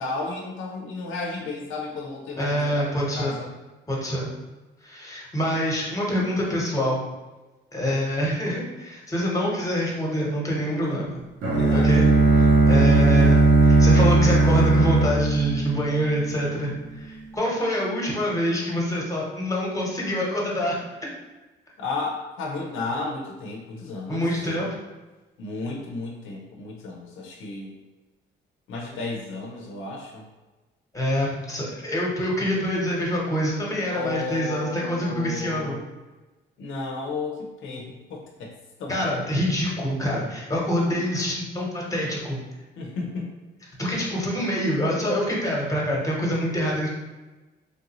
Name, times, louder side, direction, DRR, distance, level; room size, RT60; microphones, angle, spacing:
voice 1, 0.0-3.5 10.6-11.1 11.5-12.3 12.6-12.7 21.8-24.2 25.4-27.8 28.7-30.3 33.9-35.8 36.6-38.5 38.8-39.0 42.8-43.3, left 3 dB, 80° left, -1 dB, 0.7 m, -33 dB
voice 2, 2.4-3.4 3.9-4.3 4.8-7.0 7.7-11.2 11.7-12.1 12.4-20.8 24.1-24.7 30.9-35.8 38.9-42.4 43.8-46.9, equal, 15° left, -3 dB, 1.1 m, -26 dB
Bowed string instrument, 11.4-16.4, right 2 dB, 80° right, 1.0 m, -17 dB
3.3 x 2.6 x 3.0 m, 1.2 s
cardioid pair, 90°, 20 cm